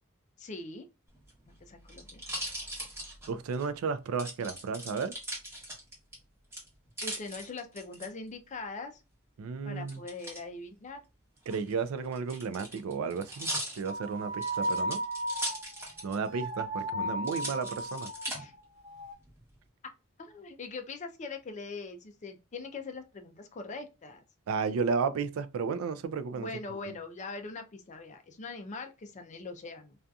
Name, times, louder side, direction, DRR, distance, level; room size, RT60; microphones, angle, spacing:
voice 1, 0.4-0.9 1.5-2.2 7.0-9.0 9.6-11.0 18.3-18.5 19.8-19.9 20.2-24.2 26.3-30.0, left 3 dB, 35° left, 0.4 m, -42 dB
sound 1, 1.1-3.7 4.2-6.1 6.5-8.1 9.9-10.4 11.4-16.3 16.6-16.7 17.2-18.4 19.0-19.5, right 1 dB, 10° right, 1.0 m, -39 dB
voice 2, 3.3-5.1 9.4-10.0 11.5-13.5 13.8-15.0 16.0-18.1 24.5-26.5, right 5 dB, 65° right, 0.3 m, -33 dB
sound 2, 13.8-18.5 18.8-19.1, right 1 dB, 30° right, 0.8 m, -35 dB
2.6 x 2.4 x 2.2 m
head